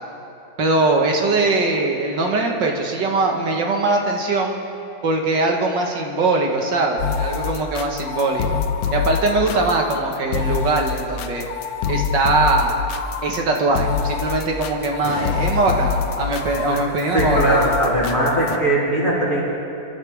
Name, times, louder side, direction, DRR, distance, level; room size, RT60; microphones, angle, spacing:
voice 1, 0.6-4.5 5.0-8.6 8.9-11.5 11.9-12.7 13.2-17.7, right 3 dB, 70° right, 1 dB, 2.1 m, -21 dB
sound 1, 7.0-18.6, left 7 dB, 90° left, 1.6 m, -25 dB
voice 2, 17.1-19.4, right 1 dB, 45° left, -8 dB, 5.2 m, -19 dB
27.0 x 13.0 x 3.5 m, 2.7 s
omnidirectional pair, 2.0 m